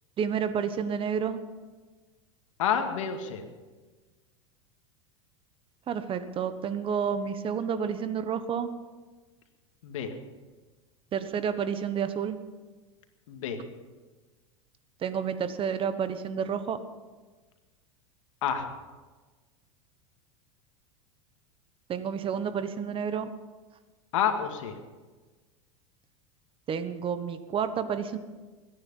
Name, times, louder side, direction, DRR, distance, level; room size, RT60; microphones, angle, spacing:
voice 1, 0.2-1.4 5.9-8.7 11.1-12.4 15.0-16.8 21.9-23.3 26.7-28.2, right 7 dB, 35° right, 11 dB, 1.2 m, -30 dB
voice 2, 2.6-3.4 9.8-10.1 13.3-13.6 18.4-18.7 24.1-24.7, left 8 dB, 75° left, 6 dB, 2.1 m, -29 dB
22.0 x 10.0 x 5.6 m, 1.3 s
hypercardioid pair, 105°, 16 cm